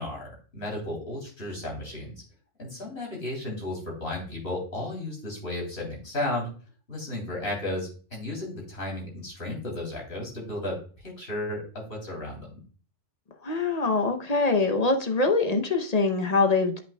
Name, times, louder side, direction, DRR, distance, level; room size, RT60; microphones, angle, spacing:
voice 1, 0.0-2.2 2.6-6.5 6.9-10.8 11.0-12.6, left 1 dB, 60° left, -2 dB, 3.5 m, -34 dB
voice 2, 13.4-16.8, left 3 dB, 40° left, 6 dB, 0.8 m, -24 dB
8.5 x 5.8 x 2.2 m, 0.39 s
omnidirectional pair, 1.2 m